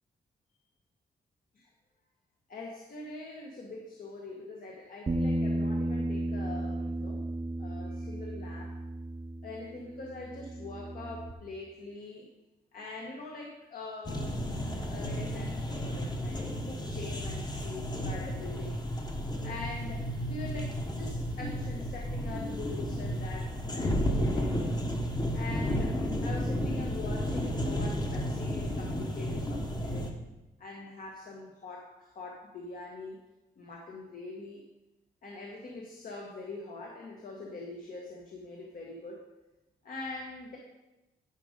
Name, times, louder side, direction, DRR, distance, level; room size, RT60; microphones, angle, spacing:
voice 1, 2.5-7.3 7.6-8.7 9.4-12.3 12.7-14.5 14.9-18.9 19.4-24.5 25.3-30.1 30.6-33.2 33.6-34.6 35.2-39.3 39.8-40.6, left 3 dB, 60° left, -1 dB, 1.4 m, -43 dB
Bass guitar, 5.1-11.3, right 1 dB, 25° right, 0.7 m, -34 dB
sound 1, 14.0-30.1, equal, 25° left, 1.1 m, -32 dB
11.0 x 5.2 x 5.2 m, 1.0 s
cardioid pair, 110°, 16 cm